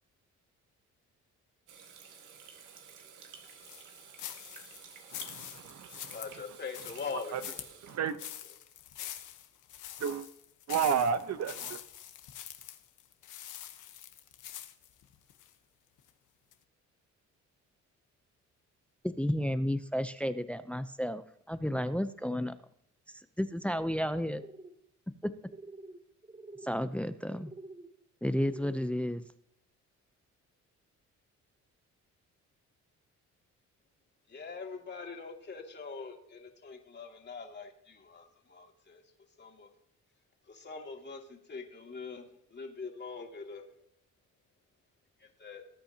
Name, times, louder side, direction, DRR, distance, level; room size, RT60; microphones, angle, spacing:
Water tap faucet / Sink (filling or washing), 1.7-8.0, right 7 dB, 85° right, 1.9 m, -52 dB
sound 1, 3.5-15.5 16.0-16.1 16.5-16.6, left 11 dB, 85° left, 1.3 m, -45 dB
voice 1, 5.1-6.2 7.1-7.4 7.8-8.2 10.0-10.3 10.7-11.8, right 7 dB, 60° right, 1.1 m, -32 dB
voice 2, 6.1-8.0 34.3-39.0 39.4-39.7 40.5-42.2 42.5-43.6 45.2-45.6, left 5 dB, 35° left, 2.6 m, -43 dB
voice 3, 19.0-22.6 23.1-24.4 25.2-25.3 26.6-27.5 28.2-29.2, equal, 5° left, 0.7 m, -32 dB
sound 2, 24.2-24.7 25.5-26.0 26.2-26.7 27.4-27.9 28.4-28.9, right 2 dB, 25° right, 2.8 m, -48 dB
19.5 x 8.6 x 2.9 m
cardioid pair, 90°, 30 cm